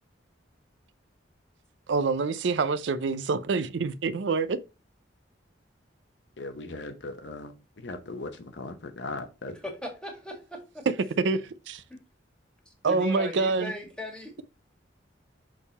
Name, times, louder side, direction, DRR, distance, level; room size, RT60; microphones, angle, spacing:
voice 1, 1.9-4.6 11.2-11.8 12.8-13.7, right 4 dB, 70° right, 0.4 m, -26 dB
voice 2, 6.4-9.6, left 2 dB, 65° left, 0.8 m, -38 dB
voice 3, 9.6-10.6 12.8-14.4, left 1 dB, 5° left, 1.6 m, -37 dB
6.5 x 3.6 x 4.1 m
head